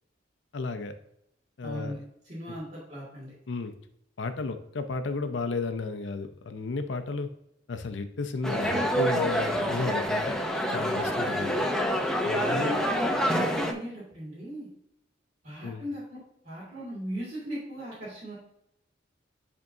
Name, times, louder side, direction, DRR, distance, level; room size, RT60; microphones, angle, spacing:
voice 1, 0.5-0.9 1.6-1.9 2.5-2.6 3.5-3.7 4.2-7.3 7.7-10.4 10.7-11.5 12.2-12.7 15.6-15.8, left 3 dB, 65° left, 8 dB, 0.5 m, -33 dB
voice 2, 1.6-3.3 12.5-14.7 15.4-18.3, equal, 45° right, -11 dB, 2.5 m, -38 dB
sound 1, 8.4-13.7, equal, 5° left, 0.6 m, -27 dB
10.5 x 3.6 x 2.7 m, 0.79 s
head